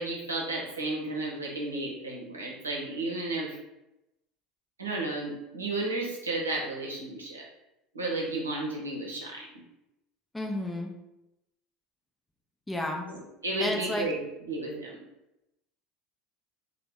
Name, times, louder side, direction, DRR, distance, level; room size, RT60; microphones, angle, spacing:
voice 1, 0.0-3.6 4.8-7.5 7.9-9.5 13.0-14.2 14.5-15.0, right 2 dB, 90° right, -2 dB, 0.7 m, -33 dB
voice 2, 10.3-10.9 12.7-13.1 13.6-14.1, left 1 dB, 10° left, 1 dB, 0.6 m, -31 dB
2.9 x 2.2 x 3.5 m, 0.90 s
figure-of-eight pair, 70°, 0 cm